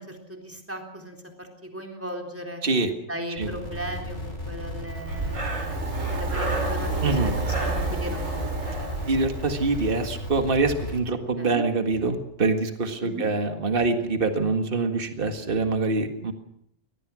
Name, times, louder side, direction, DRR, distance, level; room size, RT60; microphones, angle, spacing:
voice 1, 0.0-2.6 3.1-8.8 11.4-11.6 13.0-13.2, equal, 10° right, 2 dB, 3.8 m, -37 dB
sound 1, 3.4-11.0, left 1 dB, 60° left, 6.3 m, -35 dB
Breathing, 5.0-9.9, right 2 dB, 80° right, 4.5 m, -29 dB
voice 2, 7.0-7.3 9.1-16.3, right 3 dB, 45° right, 6 dB, 2.0 m, -25 dB
23.5 x 19.5 x 6.3 m, 0.75 s
omnidirectional pair, 1.3 m